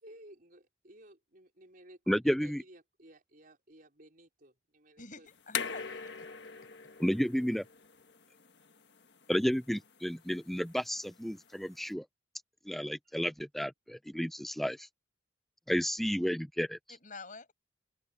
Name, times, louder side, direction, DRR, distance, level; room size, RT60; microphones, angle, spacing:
voice 1, 0.0-5.3 13.0-13.3, right 1 dB, 45° right, 4.5 m, -56 dB
voice 2, 2.1-2.6 7.0-7.6 9.3-12.1 12.7-14.9 15.7-16.8, equal, ahead, 0.3 m, -32 dB
voice 3, 5.0-6.3 16.9-17.5, left 3 dB, 40° left, 7.8 m, -49 dB
sound 1, 5.3-11.9, left 7 dB, 60° left, 1.6 m, -43 dB
head